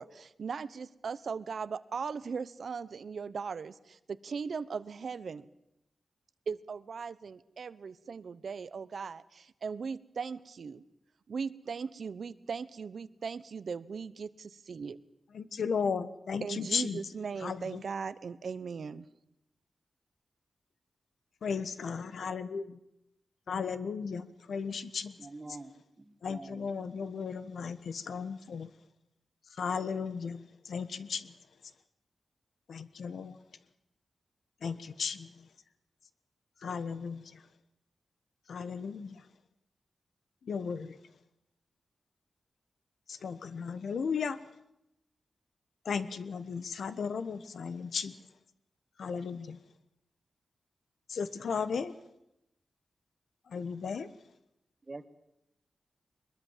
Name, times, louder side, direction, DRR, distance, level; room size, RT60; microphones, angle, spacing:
voice 1, 0.0-5.4 6.5-10.8 11.3-15.0 16.4-19.1, right 5 dB, 70° right, 15 dB, 0.9 m, -38 dB
voice 2, 15.3-17.0 17.4-17.8 21.4-22.6 23.5-25.1 26.2-28.7 29.6-30.4 30.7-31.3 32.7-33.4 34.6-35.3 36.6-37.2 38.5-39.2 40.5-41.0 43.2-44.4 45.9-48.1 49.0-49.6 51.1-51.9 53.5-54.1, left 6 dB, 90° left, 13 dB, 1.3 m, -35 dB
voice 3, 25.2-25.7 26.3-26.7 54.9-55.0, right 2 dB, 30° right, 10 dB, 1.6 m, -44 dB
22.0 x 21.5 x 7.4 m, 0.85 s
wide cardioid pair, 105°, 0 cm